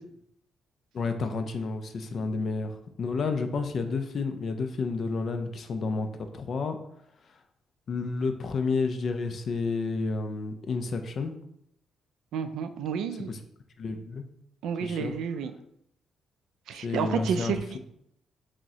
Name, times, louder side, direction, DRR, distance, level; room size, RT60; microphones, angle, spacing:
voice 1, 0.9-6.1 6.3-6.8 7.9-11.3 13.3-13.4 13.8-14.2 14.8-15.1 16.7-17.8, left 4 dB, 40° left, 7 dB, 0.3 m, -30 dB
voice 2, 12.3-13.4 14.6-15.5 16.7-17.8, right 7 dB, 85° right, 9 dB, 0.3 m, -30 dB
6.0 x 2.0 x 2.7 m, 0.75 s
cardioid pair, 160°, 0 cm